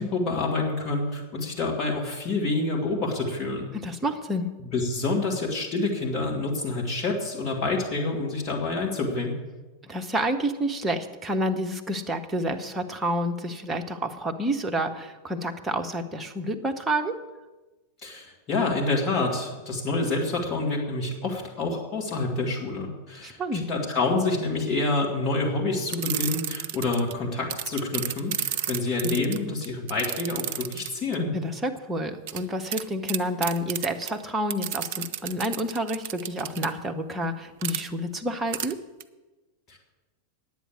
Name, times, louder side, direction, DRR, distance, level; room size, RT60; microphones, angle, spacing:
voice 1, 0.0-3.7 4.6-9.4 18.0-31.3 39.7-39.8, left 3 dB, 35° left, 0 dB, 2.8 m, -27 dB
voice 2, 3.7-4.5 9.8-17.1 23.2-23.7 31.3-38.8, right 1 dB, 10° right, 3 dB, 1.1 m, -29 dB
sound 1, 25.9-27.1 27.5-31.1 32.3-32.4 32.7-32.8 33.1-34.1 34.5-36.7 37.6-37.8 38.5-38.7 39.0-39.1, right 10 dB, 50° right, 0.6 m, -31 dB
9.8 x 8.2 x 7.8 m, 1.2 s
figure-of-eight pair, 90°, 0 cm